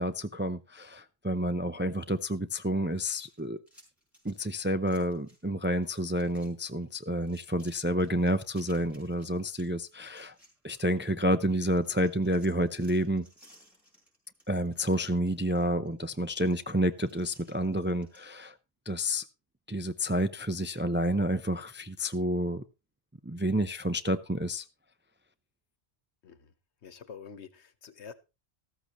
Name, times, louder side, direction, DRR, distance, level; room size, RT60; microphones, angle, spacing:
voice 1, 0.0-3.6 4.2-10.3 10.6-13.3 14.5-18.5 18.9-19.2 19.7-22.6 23.2-24.6, equal, 20° right, 0.3 m, -29 dB
sound 1, 2.9-5.5 5.8-6.5 6.8-11.3 11.6-18.3, equal, ahead, 5.3 m, -60 dB
voice 2, 26.2-26.5 26.8-28.1, left 6 dB, 90° left, 1.4 m, -47 dB
14.0 x 13.5 x 3.0 m
omnidirectional pair, 1.1 m